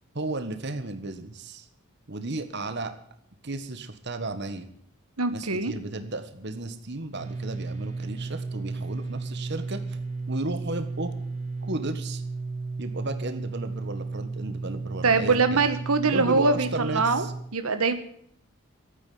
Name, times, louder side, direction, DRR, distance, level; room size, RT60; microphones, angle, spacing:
voice 1, 0.1-1.7 2.1-2.9 3.4-4.7 5.3-10.0 10.3-11.1 11.6-12.2 12.8-15.6 16.1-17.3, right 2 dB, 50° right, 9 dB, 1.6 m, -34 dB
voice 2, 5.2-5.7 15.0-17.2 17.5-17.9, right 4 dB, 85° right, 9 dB, 1.3 m, -23 dB
sound 1, 7.1-17.4, right 3 dB, 30° right, 2.8 m, -34 dB
13.5 x 9.3 x 9.4 m, 0.64 s
head